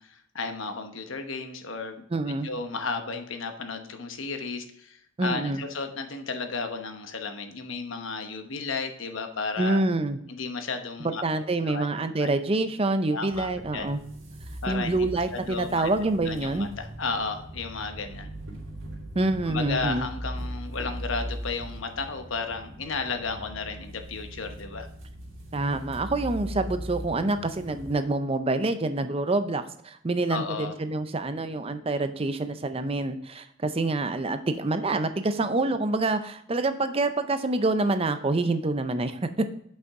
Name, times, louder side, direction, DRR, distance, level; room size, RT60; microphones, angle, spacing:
voice 1, 0.0-2.0 2.4-9.8 10.3-11.2 11.6-11.9 12.2-12.3 13.1-13.9 14.6-15.0 15.3-15.9 16.2-18.3 19.5-24.9 30.3-30.7, left 4 dB, 75° left, 6 dB, 1.0 m, -33 dB
voice 2, 2.1-2.5 5.2-5.6 9.6-10.2 11.0-14.0 14.7-16.7 19.1-20.1 25.5-39.4, right 2 dB, 30° right, 10 dB, 0.5 m, -27 dB
sound 1, 13.3-27.9, equal, 80° right, 2.9 m, -39 dB
8.0 x 5.6 x 3.6 m, 0.69 s
head